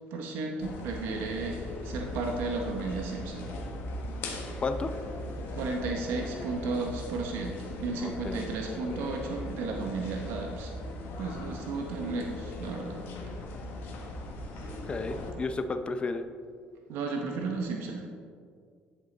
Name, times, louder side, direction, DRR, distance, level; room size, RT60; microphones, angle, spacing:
voice 1, 0.1-3.5 5.5-10.7 11.2-13.0 13.2-13.3 14.5-14.7 16.9-18.1, right 3 dB, 80° right, 2 dB, 0.9 m, -34 dB
sound 1, 0.6-15.3, left 1 dB, 70° left, 1.3 m, -39 dB
voice 2, 8.0-8.5 14.9-16.2, left 3 dB, 30° left, 8 dB, 0.5 m, -32 dB
10.5 x 5.5 x 3.9 m, 2.2 s
cardioid pair, 110°, 4 cm